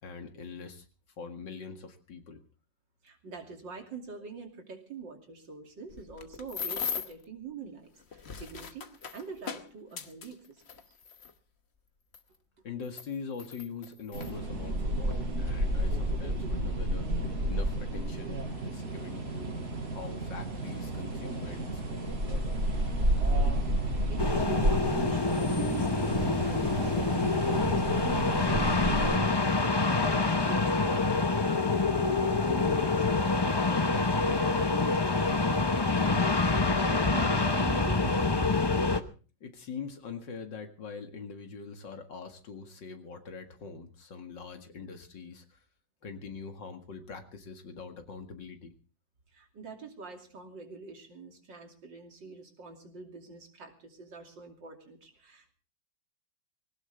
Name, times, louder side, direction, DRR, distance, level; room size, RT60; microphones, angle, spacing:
voice 1, 0.0-0.9 1.2-2.4 12.6-19.6 19.9-22.6 39.4-45.6 46.0-48.7, left 5 dB, 85° left, 6 dB, 2.6 m, -43 dB
voice 2, 3.0-10.8 24.1-30.1 30.4-36.2 36.6-38.7 49.3-55.5, right 5 dB, 85° right, 3 dB, 3.4 m, -45 dB
sound 1, 5.9-7.2 8.0-11.3 12.1-12.2 12.8-14.3 15.1-15.2 15.6-15.9, left 6 dB, 40° left, 1.2 m, -39 dB
sound 2, 14.1-29.2, right 1 dB, 60° right, 5.3 m, -31 dB
sound 3, 24.2-39.0, left 3 dB, 25° left, 0.5 m, -26 dB
20.5 x 18.0 x 3.4 m, 0.37 s
omnidirectional pair, 1.9 m